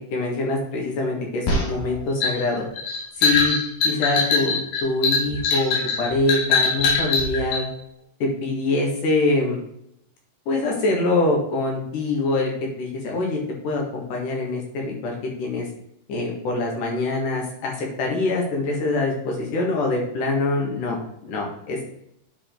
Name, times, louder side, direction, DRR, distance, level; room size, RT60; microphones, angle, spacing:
voice 1, 0.0-2.7 3.2-3.6 3.8-7.7 8.2-9.6 10.5-12.5 12.8-15.7 16.1-21.8, left 2 dB, 65° left, -1 dB, 3.3 m, -24 dB
sound 1, 1.5-7.6, left 4 dB, 85° left, 3.7 m, -22 dB
9.9 x 5.0 x 3.8 m, 0.76 s
omnidirectional pair, 4.0 m